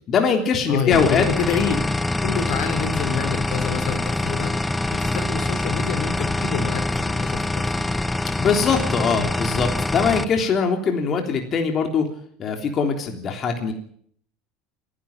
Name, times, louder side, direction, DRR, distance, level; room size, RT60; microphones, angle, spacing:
voice 1, 0.1-1.3 8.4-12.1 12.4-13.7, left 5 dB, 40° left, 4 dB, 3.4 m, -21 dB
voice 2, 0.7-1.8 2.2-8.0 10.0-10.1, left 7 dB, 70° left, 8 dB, 3.7 m, -28 dB
sound 1, 0.9-10.3, left 2 dB, 10° left, 0.9 m, -24 dB
28.0 x 11.0 x 8.9 m, 0.63 s
supercardioid pair, 115°, 0 cm